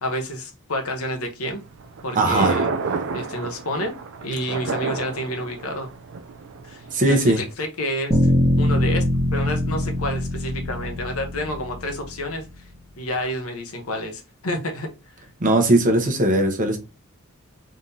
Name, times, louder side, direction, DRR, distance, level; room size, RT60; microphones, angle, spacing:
voice 1, 0.0-1.6 2.0-2.7 3.1-3.9 4.2-5.9 6.6-8.2 8.6-12.7 13.0-15.1, left 1 dB, 85° left, 1.0 m, -29 dB
Thunder, 1.6-7.5, right 4 dB, 60° right, 0.4 m, -30 dB
voice 2, 2.1-2.6 6.9-7.4 15.4-16.8, right 1 dB, 40° right, 0.9 m, -19 dB
sound 1, 8.1-12.1, left 1 dB, 15° right, 1.1 m, -22 dB
3.7 x 3.4 x 2.7 m
head